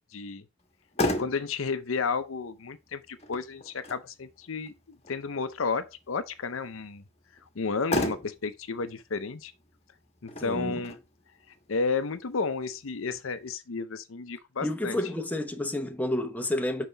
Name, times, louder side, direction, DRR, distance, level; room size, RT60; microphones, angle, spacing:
voice 1, 0.1-0.4 1.2-4.7 5.1-7.0 7.6-9.5 10.2-11.0 11.7-15.0, left 4 dB, 70° left, 0.7 m, -32 dB
Motor vehicle (road), 0.6-13.5, left 1 dB, 30° left, 1.3 m, -37 dB
voice 2, 10.4-10.8 14.6-16.9, left 1 dB, 10° left, 0.9 m, -30 dB
5.8 x 5.7 x 4.0 m
head